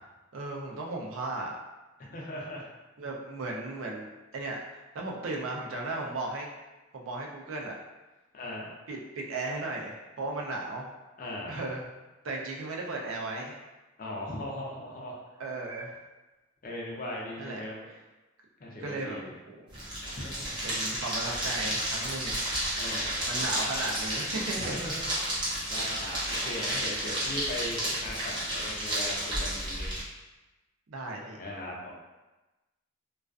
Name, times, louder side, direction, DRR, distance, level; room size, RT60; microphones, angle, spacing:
voice 1, 0.3-1.6 3.0-6.5 6.9-7.8 8.9-10.9 11.5-11.8 12.2-13.6 15.4-16.0 17.4-17.6 18.8-19.2 19.5-19.8 20.6-22.4 23.3-24.9 30.9-31.4, right 2 dB, 75° right, -1 dB, 0.4 m, -36 dB
voice 2, 2.1-2.7 8.3-8.7 11.2-11.5 14.0-15.2 16.6-17.9 18.6-19.3 20.1-20.6 22.8-23.4 24.6-25.4 25.7-29.9 31.4-31.9, left 1 dB, 40° left, -3 dB, 0.4 m, -39 dB
sound 1, 19.7-30.0, right 1 dB, 20° right, 0.7 m, -32 dB
2.4 x 2.3 x 2.3 m, 1.1 s
head